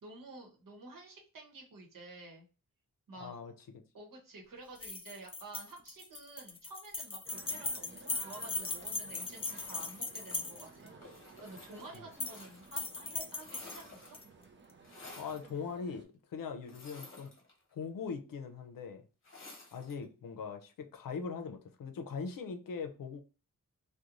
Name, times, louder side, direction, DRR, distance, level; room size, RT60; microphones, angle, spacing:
voice 1, 0.0-2.5 3.1-3.5 3.9-10.9 11.4-14.2, right 2 dB, 75° right, 1.0 m, -51 dB
voice 2, 3.2-3.5 15.2-17.3 17.7-19.0 19.7-23.2, left 5 dB, 75° left, 0.6 m, -41 dB
sound 1, 4.8-10.9 11.9-12.4 12.7-14.2, left 3 dB, 20° left, 0.3 m, -39 dB
sound 2, 7.3-16.1, right 4 dB, 35° right, 0.5 m, -56 dB
sound 3, 9.1-12.9 13.1-14.3 14.8-15.5 16.6-17.8 19.2-20.0, left 2 dB, 40° left, 0.9 m, -54 dB
2.5 x 2.2 x 2.9 m
wide cardioid pair, 130°, 33 cm